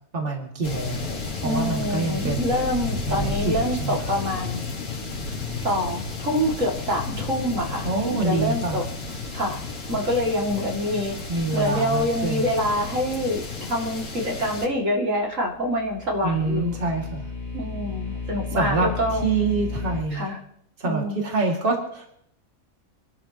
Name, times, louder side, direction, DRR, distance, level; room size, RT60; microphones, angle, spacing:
voice 1, 0.1-1.1 1.4-2.6 3.1-4.0 7.8-8.8 11.3-12.5 16.2-17.3 18.5-18.9 19.2-20.3 20.8-22.1, right 3 dB, 40° right, -1 dB, 2.6 m, -26 dB
sound 1, 0.6-14.7, left 3 dB, 85° left, 2.3 m, -32 dB
voice 2, 1.4-4.6 5.6-8.8 9.3-9.6 9.9-16.7 17.5-19.2 20.1-20.4 20.8-21.3, equal, 60° right, -2 dB, 2.9 m, -26 dB
sound 2, 15.5-20.0, left 4 dB, 50° left, 1.7 m, -33 dB
26.5 x 12.5 x 3.0 m, 0.70 s
omnidirectional pair, 1.5 m